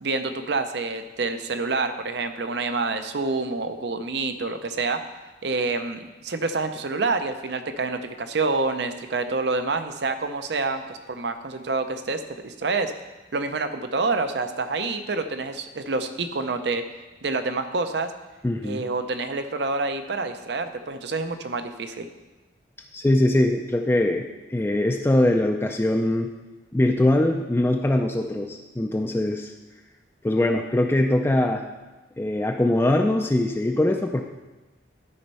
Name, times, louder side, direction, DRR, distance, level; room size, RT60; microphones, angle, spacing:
voice 1, 0.0-5.0 5.4-12.9 13.3-16.8 17.2-18.1 18.6-22.1, right 3 dB, 65° right, 8 dB, 0.6 m, -27 dB
voice 2, 18.4-18.9 22.9-26.3 26.7-29.5 30.2-31.6 32.2-34.2, left 1 dB, 15° left, 3 dB, 0.4 m, -22 dB
12.0 x 4.4 x 5.5 m, 1.2 s
head